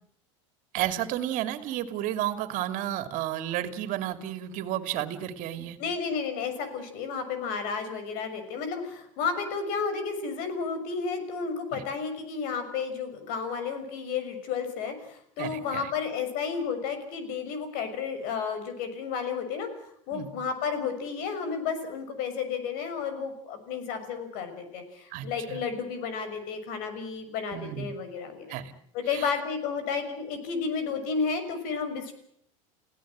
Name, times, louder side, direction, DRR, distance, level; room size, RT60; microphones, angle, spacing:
voice 1, 0.7-5.8 11.7-11.8 15.4-15.9 20.1-20.3 25.1-25.6 27.5-27.9 28.5-28.7 29.1-29.3, right 12 dB, 55° right, 9 dB, 2.8 m, -32 dB
voice 2, 5.8-19.7 20.1-28.6 28.9-32.1, left 5 dB, 60° left, 9 dB, 6.2 m, -32 dB
30.0 x 17.0 x 7.6 m, 0.70 s
hypercardioid pair, 95°, 16 cm